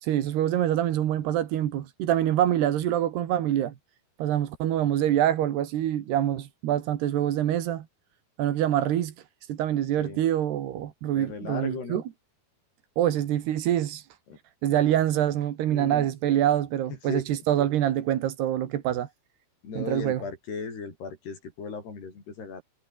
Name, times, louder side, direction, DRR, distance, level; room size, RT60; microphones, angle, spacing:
voice 1, 0.0-3.7 4.2-7.9 8.4-9.1 9.5-12.0 13.0-14.1 14.6-19.1 19.8-20.2, right 11 dB, 90° right, 3.9 m, -25 dB
voice 2, 11.1-12.0 14.3-14.4 15.7-16.1 17.0-17.3 19.6-22.6, left 5 dB, 90° left, 8.8 m, -36 dB
omnidirectional pair, 4.6 m